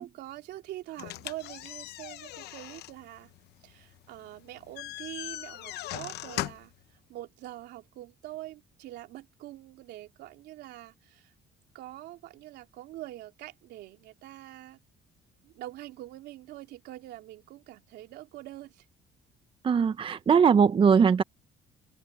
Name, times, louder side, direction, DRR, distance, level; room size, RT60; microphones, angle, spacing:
voice 1, 0.0-3.3 3.6-11.3 11.7-14.8 15.4-18.8, right 15 dB, 80° right, 3.3 m, -44 dB
sound 1, 1.0-6.8, left 15 dB, 75° left, 0.8 m, -40 dB
voice 2, 19.6-21.2, right 6 dB, 30° right, 0.7 m, -20 dB
open air
cardioid pair, 110°, 17 cm